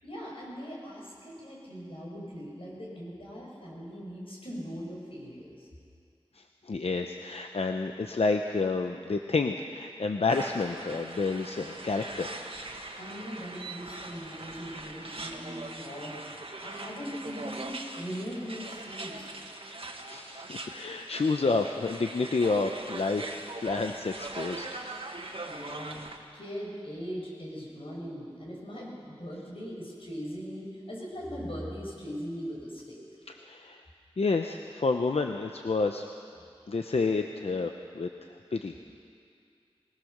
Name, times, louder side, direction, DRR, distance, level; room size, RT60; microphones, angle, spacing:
voice 1, 0.0-5.7 13.0-16.1 16.6-19.3 25.5-26.1 26.3-33.0, equal, 65° left, -3 dB, 6.4 m, -40 dB
voice 2, 6.4-12.3 20.0-24.7 33.3-33.8 34.2-36.0 36.7-38.7, left 3 dB, 85° left, 5 dB, 0.8 m, -29 dB
sound 1, 10.3-26.2, right 2 dB, 65° right, 1.8 m, -41 dB
21.0 x 19.5 x 6.6 m, 2.3 s
wide cardioid pair, 60°, 10 cm